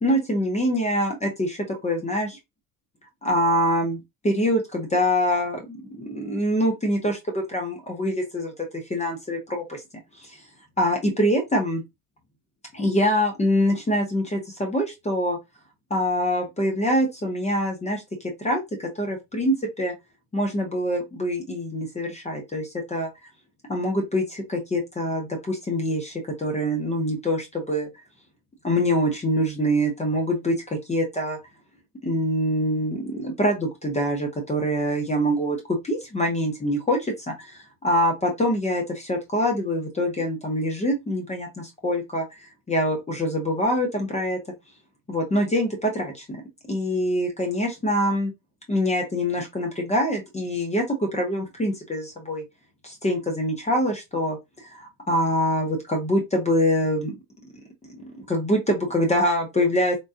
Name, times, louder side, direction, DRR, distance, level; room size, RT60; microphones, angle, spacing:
voice 1, 0.0-2.4 3.2-9.8 10.3-10.4 10.8-11.8 12.7-15.4 15.9-19.9 20.3-23.1 23.7-27.9 28.6-31.4 32.0-44.4 45.1-46.4 46.7-48.3 48.7-52.4 52.8-57.2 57.8-60.0, equal, 15° left, 0.9 m, -25 dB
3.8 x 2.4 x 2.4 m
hypercardioid pair, 70°, 47 cm